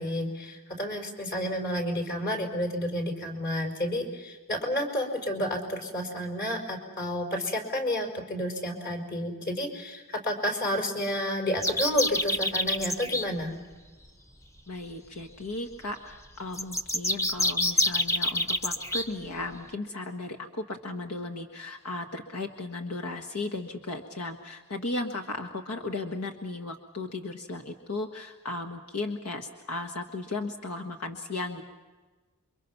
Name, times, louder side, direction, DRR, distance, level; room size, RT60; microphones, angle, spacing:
voice 1, 0.0-13.5, equal, 45° left, 2 dB, 4.9 m, -30 dB
sound 1, 11.6-13.2 16.5-19.0, left 1 dB, 15° left, 1.0 m, -27 dB
voice 2, 14.7-31.6, left 2 dB, 90° left, 4 dB, 1.6 m, -35 dB
29.0 x 24.0 x 5.9 m, 1.3 s
head